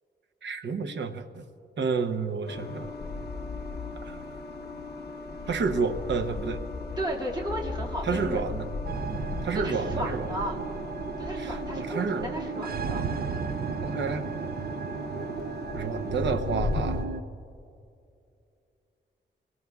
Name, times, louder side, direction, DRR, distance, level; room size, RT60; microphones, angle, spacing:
voice 1, 0.4-1.5 1.8-2.9 4.1-4.2 5.5-6.6 8.0-8.7 9.4-10.3 11.4-12.4 13.8-14.2 15.7-17.0, right 5 dB, 75° right, 8 dB, 0.9 m, -30 dB
sound 1, 2.5-17.1, left 3 dB, 60° left, 1.1 m, -36 dB
voice 2, 7.0-8.4 9.5-10.5 11.2-13.5, right 1 dB, 25° right, -4 dB, 2.2 m, -34 dB
sound 2, 8.9-17.2, right 6 dB, 55° right, 0.5 m, -35 dB
26.5 x 19.0 x 2.4 m, 2.5 s
wide cardioid pair, 155°, 19 cm